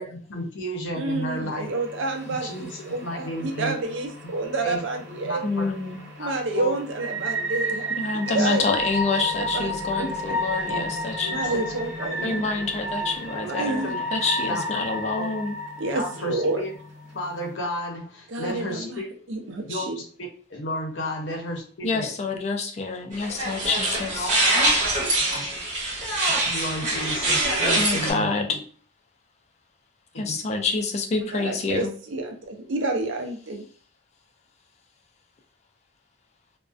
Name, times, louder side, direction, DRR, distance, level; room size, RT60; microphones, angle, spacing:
voice 1, 0.0-1.7 2.3-3.8 4.6-4.8 5.2-5.7 6.2-6.7 7.1-7.3 8.3-8.5 10.7-10.8 11.1-11.6 12.9-13.1 13.5-14.0 14.5-14.6 15.2-15.3 15.9-16.8 17.1-19.1 19.7-22.1 25.3-25.5 26.1-28.6 30.1-30.4, equal, 70° left, 2 dB, 0.6 m, -33 dB
voice 2, 0.9-5.4 6.2-7.9 8.3-8.8 9.5-10.4 11.3-12.4 13.6-13.9 15.8-16.6 18.3-19.0 19.3-20.0 31.3-33.6, right 2 dB, 80° right, 3 dB, 0.5 m, -29 dB
sound 1, 1.6-17.5, equal, 65° right, 1.0 m, -33 dB
voice 3, 5.4-6.0 8.0-11.6 12.2-13.9 14.1-15.5 21.8-24.3 27.8-28.5 30.2-31.9, left 4 dB, 35° left, 4 dB, 0.3 m, -27 dB
sound 2, 8.7-14.3, left 1 dB, 5° left, 0.7 m, -41 dB
sound 3, 23.1-28.1, right 1 dB, 40° right, 0.7 m, -24 dB
2.3 x 2.1 x 2.4 m, 0.43 s
head